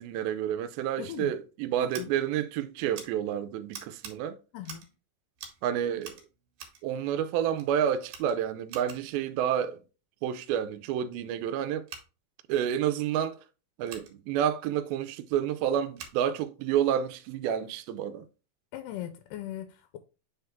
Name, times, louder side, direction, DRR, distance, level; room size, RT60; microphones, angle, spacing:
voice 1, 0.0-4.4 5.6-6.2 6.8-9.8 10.2-11.9 12.5-13.4 13.8-18.3, right 9 dB, 90° right, 2.4 m, -29 dB
voice 2, 1.0-1.3 1.8-2.1 4.5-4.9 18.7-20.0, left 12 dB, 80° left, 1.9 m, -39 dB
Scissors, 1.9-2.0 2.9-3.1 3.7-4.1 4.6-5.0 5.4-5.6 6.0-6.8 7.5-7.7 8.1-9.2 11.8-12.0 13.8-14.1 15.9-16.2, right 7 dB, 70° right, 2.8 m, -45 dB
7.8 x 3.6 x 3.5 m
omnidirectional pair, 4.2 m